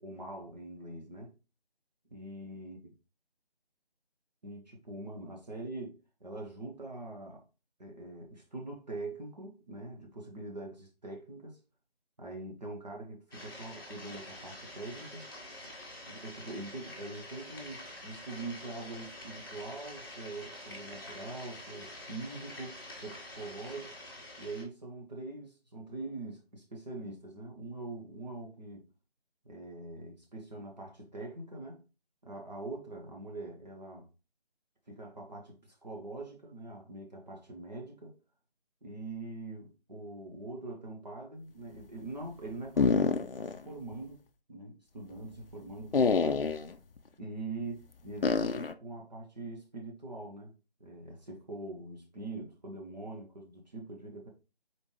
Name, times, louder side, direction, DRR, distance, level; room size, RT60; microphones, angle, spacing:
voice 1, 0.0-1.3 2.1-2.8 4.4-7.4 7.8-11.6 12.2-15.3 16.1-24.0 24.4-28.8 29.4-31.8 32.2-34.1 34.9-38.2 38.8-44.2 44.5-46.5 47.2-47.8 48.0-50.5 50.8-54.3, right 2 dB, 40° right, 0.9 m, -43 dB
sound 1, 13.3-24.7, left 1 dB, 20° left, 0.9 m, -47 dB
sound 2, 42.8-43.6 43.9-44.0 45.9-46.7 48.2-48.7, left 5 dB, 60° left, 0.4 m, -27 dB
4.2 x 3.2 x 3.1 m
figure-of-eight pair, 160°, 32 cm